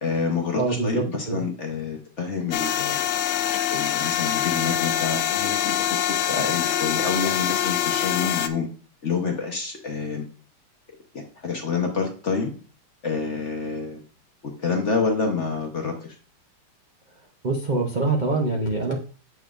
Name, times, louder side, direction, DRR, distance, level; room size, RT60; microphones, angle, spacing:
voice 1, 0.0-3.0 3.7-8.7 9.0-10.2 11.1-12.5 13.0-14.0 14.4-16.1, left 4 dB, 40° left, 2 dB, 1.1 m, -28 dB
voice 2, 0.6-1.4 17.4-18.9, right 3 dB, 60° right, 0 dB, 0.4 m, -24 dB
sound 1, 2.5-8.5, left 11 dB, 85° left, 1.5 m, -24 dB
9.0 x 6.1 x 2.5 m, 0.37 s
omnidirectional pair, 2.4 m